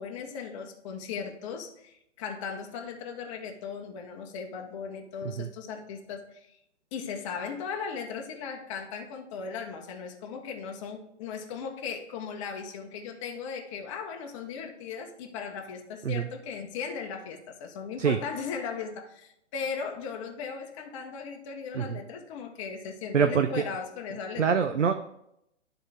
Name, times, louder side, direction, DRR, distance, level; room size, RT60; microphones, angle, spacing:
voice 1, 0.0-6.6 6.9-24.7, left 6 dB, 25° left, 2 dB, 0.8 m, -37 dB
voice 2, 23.1-23.6 24.4-24.9, right 7 dB, 90° right, 8 dB, 0.6 m, -24 dB
12.0 x 4.0 x 3.4 m, 0.77 s
figure-of-eight pair, 125°, 36 cm